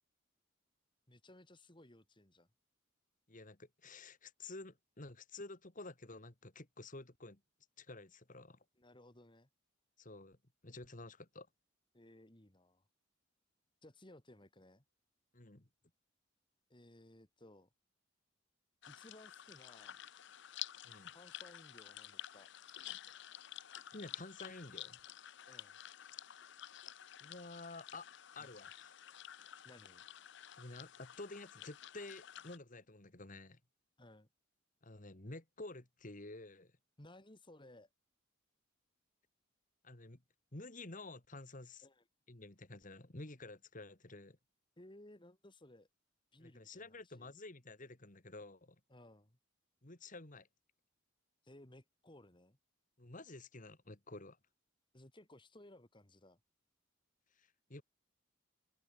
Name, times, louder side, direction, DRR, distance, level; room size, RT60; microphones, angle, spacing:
voice 1, 1.1-2.5 8.8-9.5 11.9-12.8 13.8-14.8 16.7-17.7 18.9-20.0 21.1-22.5 25.5-25.8 28.4-28.5 29.6-30.0 34.0-34.3 37.0-37.9 41.8-42.0 44.8-45.9 46.3-47.3 48.9-49.4 51.4-52.6 54.9-56.4, left 1 dB, 25° left, 2.5 m, -60 dB
voice 2, 3.3-7.4 7.8-8.6 10.0-10.4 10.6-11.5 15.3-15.7 20.8-21.1 23.9-25.0 27.2-28.1 28.4-29.0 30.6-33.6 34.8-36.7 39.8-40.2 40.5-41.9 42.3-44.4 46.4-48.8 49.8-50.5 53.0-54.4 57.4-57.8, left 2 dB, 40° left, 2.1 m, -51 dB
sound 1, 18.8-32.6, left 12 dB, 60° left, 0.7 m, -51 dB
head